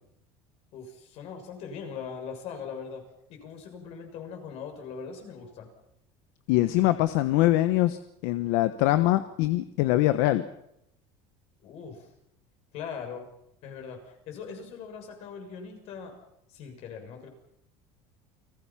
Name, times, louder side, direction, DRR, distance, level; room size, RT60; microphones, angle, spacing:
voice 1, 0.7-3.0 3.3-5.7 11.6-12.1 12.7-13.3 13.6-16.1 16.5-17.3, left 6 dB, 55° left, 4 dB, 6.7 m, -40 dB
voice 2, 6.5-10.4, left 16 dB, 75° left, 11 dB, 1.1 m, -23 dB
29.5 x 20.5 x 5.9 m, 0.80 s
cardioid pair, 145°, 13 cm